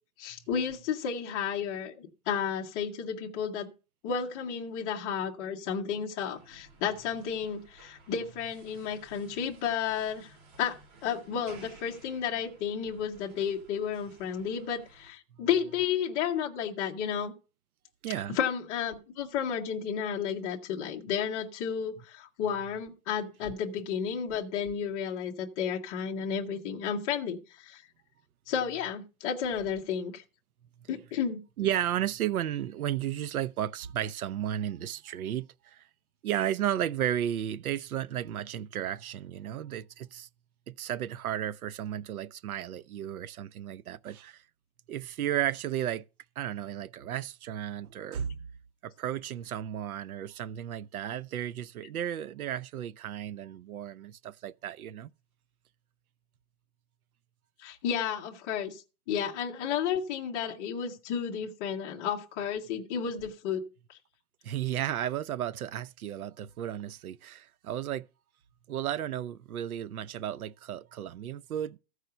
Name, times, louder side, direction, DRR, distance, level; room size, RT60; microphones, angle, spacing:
voice 1, 0.2-3.7 4.0-10.3 10.6-10.8 11.0-17.3 18.3-27.8 28.5-30.2 30.9-31.4 57.6-58.8 59.1-63.6 63.9-64.0, left 7 dB, 15° left, 0.6 m, -32 dB
sound 1, 6.3-15.1, right 3 dB, 35° right, 4.2 m, -56 dB
voice 2, 18.0-18.4 31.6-35.8 36.2-40.3 40.7-44.4 44.9-46.0 46.4-48.4 48.8-55.1 64.4-68.1 68.7-71.8, right 11 dB, 90° right, 0.7 m, -33 dB
14.5 x 4.8 x 6.6 m
hypercardioid pair, 165°, 42 cm